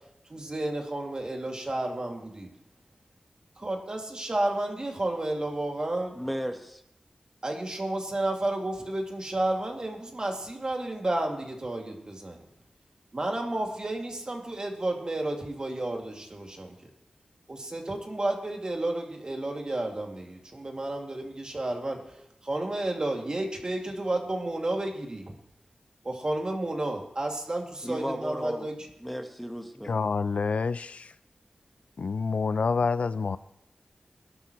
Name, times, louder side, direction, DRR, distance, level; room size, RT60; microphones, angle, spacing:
voice 1, 0.3-2.5 3.6-6.2 7.4-12.5 13.1-16.7 17.5-22.0 22.4-25.3 26.0-28.7, right 1 dB, 35° right, 1 dB, 2.3 m, -31 dB
voice 2, 6.1-6.8 27.8-28.7 29.0-29.9, equal, ahead, 5 dB, 1.2 m, -34 dB
voice 3, 29.8-31.1 32.0-33.4, left 4 dB, 70° left, 14 dB, 0.4 m, -27 dB
21.5 x 11.5 x 3.1 m, 0.83 s
wide cardioid pair, 85°, 2 cm